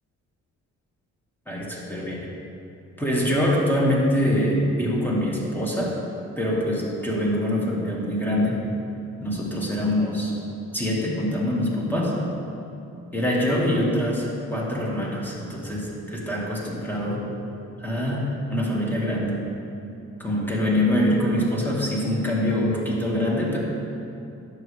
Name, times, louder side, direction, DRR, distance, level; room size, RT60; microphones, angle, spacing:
voice 1, 1.5-2.3 3.0-6.0 6.4-8.6 9.2-10.4 10.7-12.2 13.1-17.2 17.8-19.4 20.2-23.6, left 1 dB, 5° left, -4 dB, 1.8 m, -24 dB
10.5 x 6.5 x 3.3 m, 2.7 s
cardioid pair, 90°, 30 cm